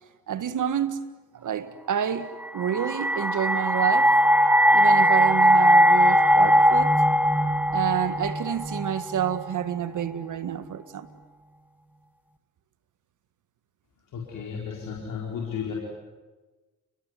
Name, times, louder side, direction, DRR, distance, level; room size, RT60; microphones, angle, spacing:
voice 1, 0.3-1.0 1.3-2.3 2.5-4.1 4.7-6.9 7.7-11.1, right 9 dB, 65° right, 1.8 m, -28 dB
sound 1, 2.4-9.5, equal, 5° right, 1.5 m, -20 dB
voice 2, 14.1-15.7, left 6 dB, 70° left, 4.6 m, -33 dB
30.0 x 20.5 x 9.6 m
hypercardioid pair, 45°, 34 cm